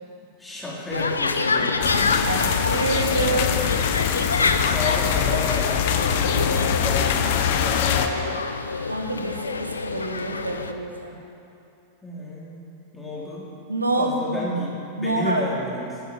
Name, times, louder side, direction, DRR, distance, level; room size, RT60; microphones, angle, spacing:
voice 1, 0.4-1.9 4.3-5.8 6.0-7.1 7.4-8.1 12.0-13.5 14.0-16.0, left 2 dB, 10° left, -6 dB, 4.0 m, -31 dB
sound 1, 0.9-10.7, left 4 dB, 75° left, 0.7 m, -27 dB
sound 2, 1.8-8.1, left 8 dB, 50° left, 0.9 m, -23 dB
voice 2, 2.2-3.6 8.8-11.2 13.7-14.4 15.0-15.5, right 2 dB, 80° right, 2 dB, 1.3 m, -27 dB
12.5 x 10.0 x 7.5 m, 2.7 s
figure-of-eight pair, 90°, 0 cm